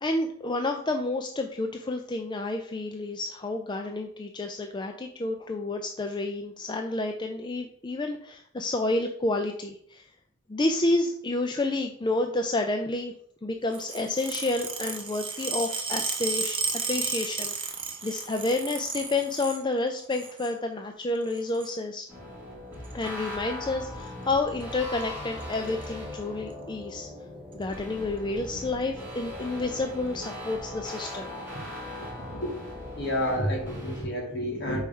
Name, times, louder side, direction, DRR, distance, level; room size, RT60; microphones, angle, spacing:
voice 1, 0.0-10.1 10.5-13.1 13.4-16.6 16.9-17.7 18.0-22.1 22.9-27.1 27.5-31.3, left 2 dB, 25° left, 4 dB, 0.4 m, -30 dB
sound 1, 13.7-19.6 20.0-20.5 21.3-21.8 22.8-23.1 24.0-24.3 24.6-24.7 25.0-25.1 25.4-25.9 26.5-26.6 27.5-27.6, right 5 dB, 25° right, 0.9 m, -33 dB
sound 2, 22.1-34.1, left 1 dB, 10° right, 2.7 m, -39 dB
voice 2, 33.0-34.8, equal, 60° left, -3 dB, 2.7 m, -29 dB
4.8 x 4.4 x 5.4 m, 0.66 s
head